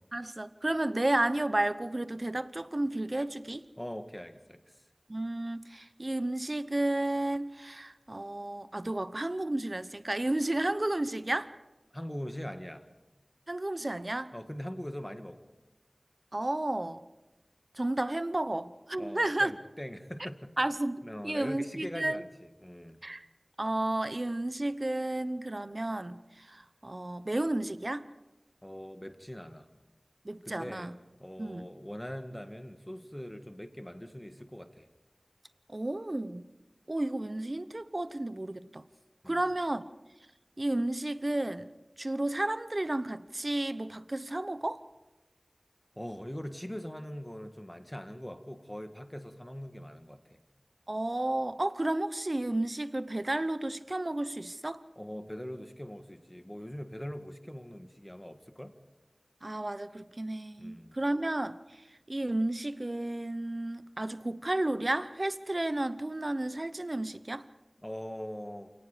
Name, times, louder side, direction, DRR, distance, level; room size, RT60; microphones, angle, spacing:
voice 1, 0.1-3.7 5.1-11.5 13.5-14.3 16.3-17.0 17.7-19.5 20.2-20.3 20.6-22.2 23.0-23.3 23.6-28.1 30.2-31.0 31.4-31.7 35.7-36.4 36.9-38.8 39.3-39.8 40.6-41.7 42.0-44.8 50.9-54.8 59.4-61.8 62.1-67.4, right 1 dB, 50° right, 0.9 m, -32 dB
voice 2, 3.8-4.6 11.9-12.9 14.3-15.5 19.0-20.5 21.0-23.0 28.6-29.7 30.4-30.9 31.2-34.9 39.2-39.4 45.9-50.4 54.9-58.7 60.6-61.0 67.8-68.7, equal, 15° left, 1.7 m, -42 dB
28.0 x 18.0 x 5.1 m
wide cardioid pair, 40°, 0 cm